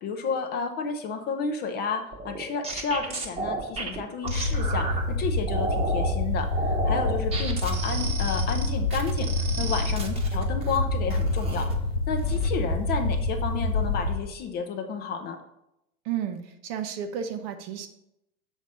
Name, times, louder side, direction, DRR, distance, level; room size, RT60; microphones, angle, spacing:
voice 1, 0.0-9.3 9.6-11.7 12.1-15.4, left 5 dB, 25° left, 6 dB, 0.6 m, -31 dB
sound 1, 2.1-5.0 5.5-6.1 6.5-10.8 11.1-11.8 12.1-12.5, right 3 dB, 15° right, 1.1 m, -33 dB
sound 2, 4.3-14.2, left 2 dB, 90° left, 0.9 m, -27 dB
voice 2, 16.0-17.9, right 8 dB, 30° right, 8 dB, 0.7 m, -32 dB
7.1 x 4.0 x 6.4 m, 0.83 s
figure-of-eight pair, 90°, 43 cm